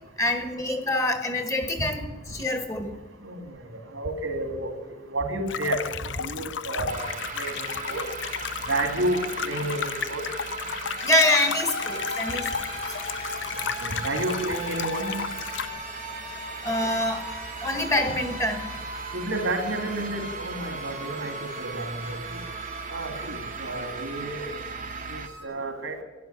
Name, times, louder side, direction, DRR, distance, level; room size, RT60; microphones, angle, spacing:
voice 1, 0.2-2.0 2.3-2.9 11.0-12.5 16.6-17.3 17.6-18.6, left 1 dB, 15° left, 6 dB, 1.3 m, -25 dB
voice 2, 3.2-8.0 8.7-10.2 13.8-15.2 19.1-22.4 22.9-24.5 25.1-26.0, right 1 dB, 85° right, 4 dB, 2.7 m, -31 dB
sound 1, 5.5-15.7, left 7 dB, 65° left, 0.6 m, -33 dB
sound 2, 6.9-25.3, right 5 dB, 40° right, 0.9 m, -38 dB
sound 3, 11.0-25.4, left 1 dB, 85° left, 5.9 m, -39 dB
13.0 x 11.0 x 9.8 m, 1.2 s
head